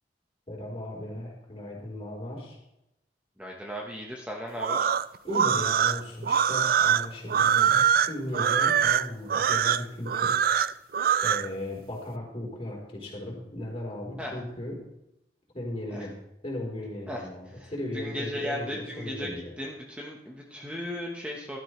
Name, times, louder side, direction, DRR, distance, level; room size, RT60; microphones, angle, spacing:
voice 1, 0.5-2.6 5.2-10.4 11.2-14.8 15.5-16.1 16.4-19.5, left 1 dB, 30° left, -3 dB, 3.8 m, -36 dB
voice 2, 3.4-4.9 14.2-14.4 15.9-16.1 17.1-21.6, equal, 5° right, -2 dB, 1.2 m, -36 dB
sound 1, 4.6-11.5, right 8 dB, 55° right, 0.4 m, -23 dB
15.5 x 12.5 x 3.2 m, 0.88 s
head